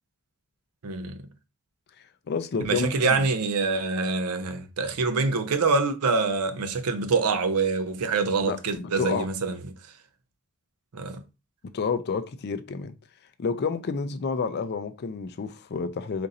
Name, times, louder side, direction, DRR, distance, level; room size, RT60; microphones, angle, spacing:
voice 1, 0.8-1.3 2.6-9.6 10.9-11.2, right 4 dB, 80° right, 0.6 m, -25 dB
voice 2, 2.3-2.9 3.2-3.3 8.4-9.3 11.6-12.9 13.4-16.3, left 5 dB, 45° left, 0.4 m, -29 dB
3.8 x 2.6 x 4.0 m
head